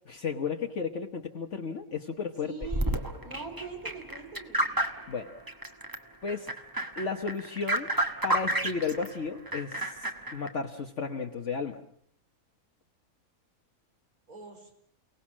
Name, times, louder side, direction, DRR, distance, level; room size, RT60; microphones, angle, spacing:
voice 1, 0.1-2.5 5.1-5.3 6.2-6.5 7.0-7.9 8.2-11.8, left 5 dB, 55° left, 3 dB, 1.6 m, -33 dB
voice 2, 2.4-4.8 14.3-14.7, right 4 dB, 90° right, 3 dB, 5.7 m, -43 dB
sound 1, 2.6-6.0 6.3-9.1 9.5-10.5, right 1 dB, 15° right, 1.5 m, -31 dB
29.5 x 18.5 x 7.4 m, 0.63 s
omnidirectional pair, 1.5 m